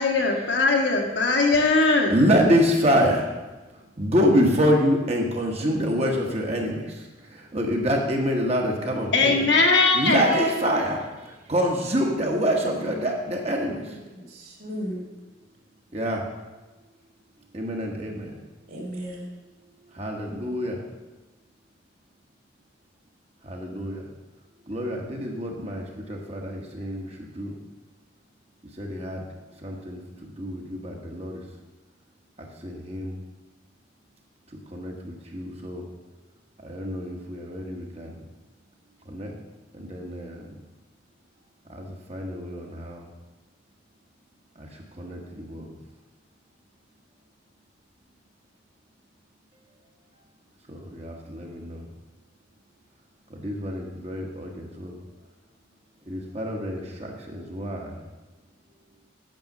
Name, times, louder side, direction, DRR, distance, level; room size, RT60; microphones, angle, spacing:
voice 1, 0.0-2.1 9.1-10.2, left 3 dB, 70° left, 1 dB, 1.7 m, -20 dB
voice 2, 1.9-3.3 3.7-9.5 9.7-14.0 15.9-16.2 17.5-18.4 19.9-20.8 23.4-24.1 24.7-27.6 28.8-29.2 29.6-31.4 32.4-33.2 34.7-35.9 36.6-38.2 39.0-39.3 39.7-40.5 41.7-43.1 44.6-45.7 50.7-51.9 53.3-54.9 56.1-58.0, equal, 35° right, 0 dB, 1.4 m, -27 dB
voice 3, 10.3-10.6 13.8-15.0 18.7-19.3, right 1 dB, 50° right, 0 dB, 2.8 m, -32 dB
9.1 x 6.4 x 6.7 m, 1.2 s
head